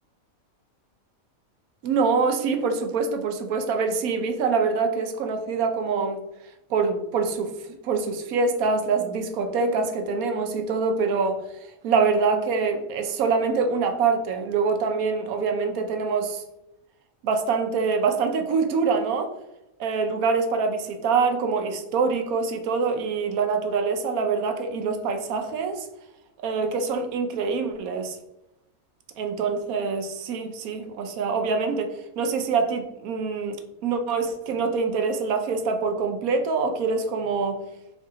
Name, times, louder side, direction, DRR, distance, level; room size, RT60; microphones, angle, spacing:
voice 1, 1.8-6.2 6.7-11.4 11.8-16.4 17.2-19.3 19.8-25.9 26.4-28.2 29.2-31.9 32.2-37.6, right 4 dB, 85° right, 5 dB, 1.1 m, -25 dB
4.5 x 2.7 x 3.7 m, 0.89 s
omnidirectional pair, 1.5 m